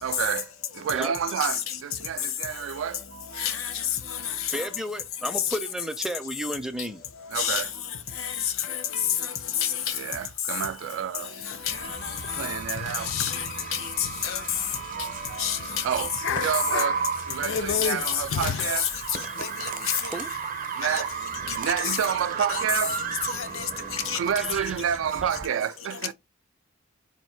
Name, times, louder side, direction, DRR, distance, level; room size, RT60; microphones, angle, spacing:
voice 1, 0.0-3.5 7.3-7.7 10.0-11.7 12.3-13.1 14.6-15.4 15.8-18.9 20.8-21.1 21.4-23.0 24.1-26.1, right 8 dB, 65° right, 0.3 m, -30 dB
voice 2, 3.4-3.7 7.4-7.6 8.2-8.3 8.7-8.8 9.6-9.7 11.7-11.8 12.3-12.6 13.1-13.4 13.7-13.8 14.2-14.4 15.4-15.6 19.4-19.7 20.8-21.0 21.5-21.6 21.8-22.0 22.5-22.6 23.3-24.2, left 9 dB, 75° left, 0.8 m, -30 dB
voice 3, 4.4-7.0 18.4-18.5 19.2-19.3 20.1-20.3 24.4-24.6, equal, 5° right, 0.5 m, -33 dB
sound 1, 10.8-10.9 11.5-11.6 12.2-15.1 15.4-15.6 16.0-18.7, left 6 dB, 60° left, 0.4 m, -32 dB
sound 2, 11.7-25.4, right 6 dB, 40° right, 0.7 m, -34 dB
4.3 x 2.6 x 4.4 m
head